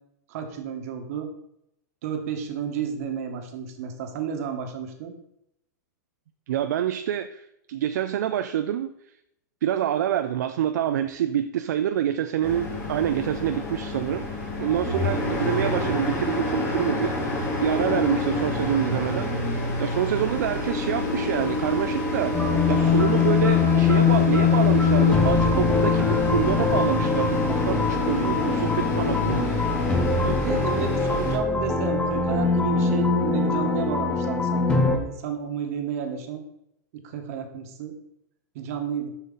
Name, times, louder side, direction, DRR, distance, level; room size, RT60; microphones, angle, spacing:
voice 1, 0.3-1.3 2.0-5.1 30.2-36.4 36.9-38.0 38.5-39.1, right 7 dB, 55° right, 5 dB, 1.4 m, -31 dB
voice 2, 6.5-8.9 9.6-14.2 14.6-22.4 22.7-29.5, right 10 dB, 75° right, 9 dB, 0.4 m, -27 dB
sound 1, 12.4-31.4, left 1 dB, 25° left, 2.3 m, -28 dB
sound 2, 22.3-35.0, left 5 dB, 10° left, 0.9 m, -22 dB
7.2 x 5.7 x 3.9 m, 0.80 s
hypercardioid pair, 140°, 10 cm